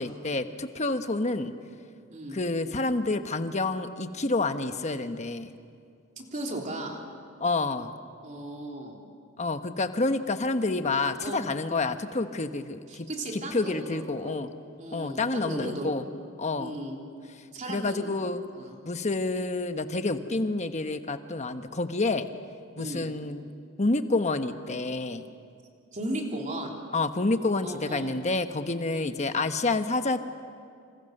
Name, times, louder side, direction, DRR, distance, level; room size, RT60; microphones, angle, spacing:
voice 1, 0.0-1.5 2.3-5.5 7.4-7.9 9.4-13.1 13.3-14.5 14.9-16.0 16.4-16.7 17.7-18.4 18.8-22.3 22.8-23.5 23.8-25.2 26.9-30.2, left 3 dB, 35° left, 8 dB, 1.1 m, -28 dB
voice 2, 6.2-7.0 8.2-9.0 11.2-11.4 11.7-11.8 12.9-14.5 14.8-15.9 16.6-17.0 17.5-18.2 18.5-18.8 22.8-23.1 25.9-26.8 27.6-28.1 28.9-29.1, right 1 dB, 35° right, 0 dB, 3.6 m, -36 dB
27.5 x 27.5 x 6.7 m, 2.3 s
head